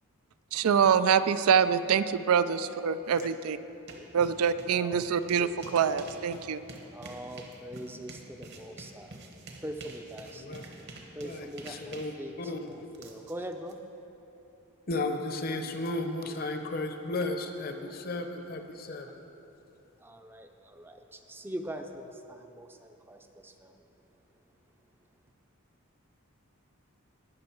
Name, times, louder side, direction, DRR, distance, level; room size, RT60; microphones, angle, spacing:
voice 1, 0.5-3.6 4.1-6.6, right 7 dB, 80° right, 13 dB, 0.4 m, -25 dB
sound 1, 3.1-3.2 3.6-13.7, right 2 dB, 50° right, 1.1 m, -48 dB
voice 2, 5.3-5.8 6.9-9.1 9.6-10.5 11.2-13.8 17.8-17.9 20.0-23.9, right 1 dB, 10° right, 5 dB, 0.5 m, -42 dB
voice 3, 11.2-12.1 12.4-12.8 14.9-19.2, left 2 dB, 40° left, 6 dB, 0.7 m, -34 dB
18.5 x 6.4 x 4.5 m, 3.0 s
head